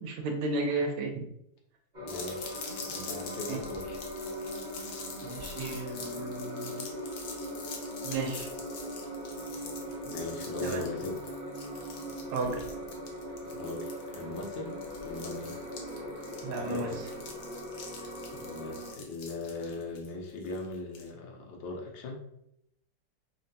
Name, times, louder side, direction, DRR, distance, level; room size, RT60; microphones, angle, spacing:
voice 1, 0.0-1.2 3.5-3.6 5.2-6.8 8.0-8.5 10.6-10.9 12.3-12.6 16.4-17.1, right 3 dB, 75° right, 3 dB, 1.2 m, -33 dB
sound 1, 1.9-18.9, equal, 35° right, 0.8 m, -40 dB
voice 2, 2.0-4.0 10.0-11.3 13.5-14.7 15.0-15.5 16.6-17.0 17.7-22.2, left 2 dB, 85° left, 0 dB, 1.4 m, -40 dB
sound 2, 2.1-21.1, left 4 dB, 65° left, 0.9 m, -45 dB
3.6 x 2.1 x 2.6 m, 0.77 s
omnidirectional pair, 2.0 m